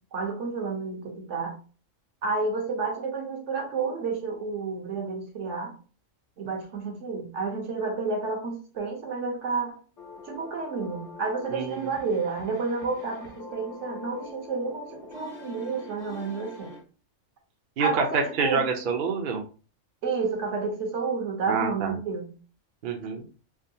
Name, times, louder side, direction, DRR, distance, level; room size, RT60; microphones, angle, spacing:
voice 1, 0.1-1.6 2.2-5.7 6.4-9.8 10.3-16.7 17.8-18.6 20.0-22.3, right 4 dB, 70° right, 1.1 m, -30 dB
sound 1, 10.0-16.8, left 3 dB, 65° left, 1.2 m, -44 dB
voice 2, 11.5-11.9 17.8-19.4 21.5-21.9 22.8-23.2, right 5 dB, 55° right, 0.6 m, -27 dB
3.5 x 2.2 x 2.6 m
omnidirectional pair, 1.3 m